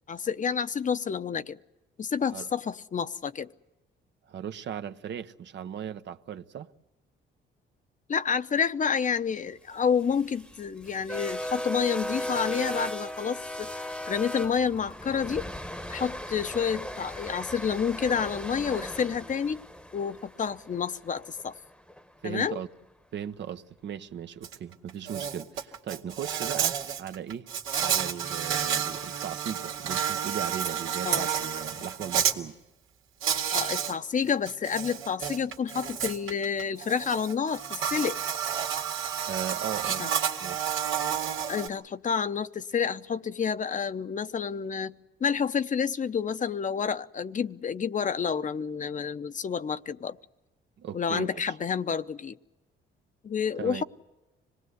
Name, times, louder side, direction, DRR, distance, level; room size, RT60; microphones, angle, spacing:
voice 1, 0.1-1.6 2.0-3.5 8.1-15.4 15.9-19.6 19.9-21.5 22.2-22.6 31.0-31.3 33.5-38.2 40.0-40.1 41.5-44.9 45.2-50.2 50.9-52.4 53.2-53.8, left 6 dB, 40° left, 0.8 m, -29 dB
voice 2, 4.3-6.7 22.2-22.7 23.1-32.5 39.2-40.1 40.4-40.7 50.8-51.5 53.6-53.8, right 9 dB, 65° right, 1.0 m, -37 dB
sound 1, 9.8-22.0, left 1 dB, 5° left, 1.1 m, -37 dB
Insect, 24.4-24.6 24.9-32.3 33.2-33.9 34.3-41.7, right 8 dB, 85° right, 2.2 m, -30 dB
25.5 x 19.5 x 8.0 m
cardioid pair, 90°, 20 cm